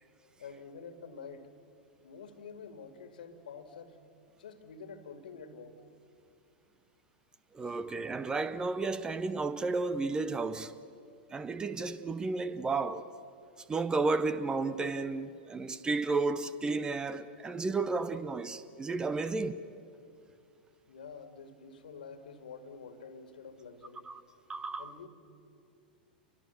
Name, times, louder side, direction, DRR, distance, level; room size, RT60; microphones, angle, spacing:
voice 1, 0.4-1.5 2.0-4.0 4.4-5.8 7.6-7.8 20.9-24.1 24.8-25.1, left 5 dB, 65° left, 2.1 m, -48 dB
voice 2, 7.5-10.7 11.3-13.1 13.7-19.6 24.1-24.2 24.5-24.9, right 3 dB, 15° right, 0.8 m, -32 dB
29.0 x 24.0 x 7.1 m
figure-of-eight pair, 95°, 5 cm